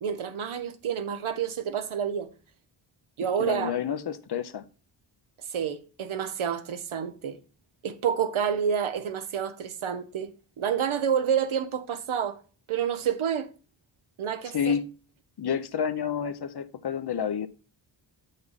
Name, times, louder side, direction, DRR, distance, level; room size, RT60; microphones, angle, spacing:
voice 1, 0.0-2.3 3.2-3.8 5.5-7.4 7.8-10.3 10.6-12.4 12.7-13.5 14.2-14.8, right 8 dB, 75° right, 0.9 m, -29 dB
voice 2, 3.4-4.6 14.5-14.9 15.4-17.5, left 7 dB, 55° left, 0.7 m, -29 dB
7.0 x 5.4 x 3.9 m
cardioid pair, 70°, 49 cm